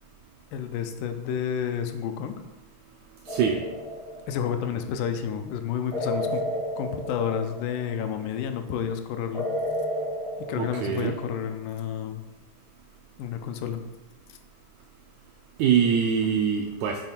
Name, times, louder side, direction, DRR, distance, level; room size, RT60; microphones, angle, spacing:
voice 1, 0.5-2.4 4.3-6.4 6.8-9.5 10.5-12.2 13.2-13.8, left 8 dB, 85° left, 7 dB, 2.2 m, -30 dB
sound 1, 3.2-4.6 5.9-8.1 9.3-11.5, equal, 35° right, 0.5 m, -32 dB
voice 2, 3.3-3.6 10.5-11.2 15.6-17.0, right 7 dB, 85° right, 2 dB, 1.6 m, -24 dB
8.0 x 3.5 x 4.3 m, 1.1 s
omnidirectional pair, 3.8 m